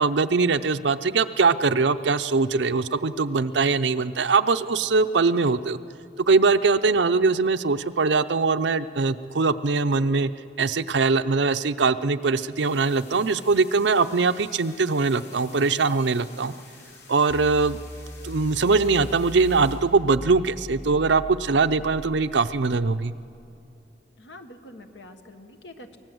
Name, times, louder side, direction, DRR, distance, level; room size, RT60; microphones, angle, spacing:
voice 1, 0.0-5.8 6.3-10.3 10.6-16.5 17.1-17.8 18.2-23.1, right 4 dB, 90° right, 11 dB, 0.7 m, -22 dB
sound 1, 12.6-19.8, left 5 dB, 65° left, 4.7 m, -50 dB
sound 2, 17.3-23.5, equal, 10° left, 0.7 m, -40 dB
voice 2, 24.2-26.0, left 1 dB, 90° left, 6 dB, 1.6 m, -45 dB
24.0 x 18.5 x 7.9 m, 2.6 s
head